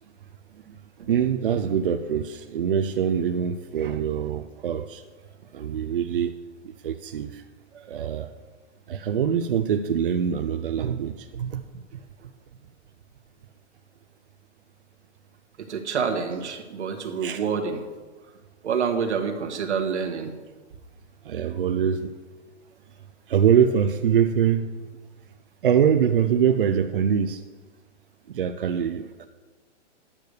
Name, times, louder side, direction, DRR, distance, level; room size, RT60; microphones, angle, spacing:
voice 1, 1.1-5.0 5.5-6.3 6.6-7.4 7.9-8.3 8.9-11.6 17.2-17.4 21.2-22.1 23.3-24.7 25.6-27.4 28.3-29.3, right 8 dB, 50° right, 7 dB, 0.5 m, -24 dB
voice 2, 7.7-8.1 15.6-17.8 18.6-20.3, right 6 dB, 70° right, 3 dB, 1.7 m, -28 dB
10.5 x 6.7 x 6.4 m, 1.3 s
hypercardioid pair, 175°, 36 cm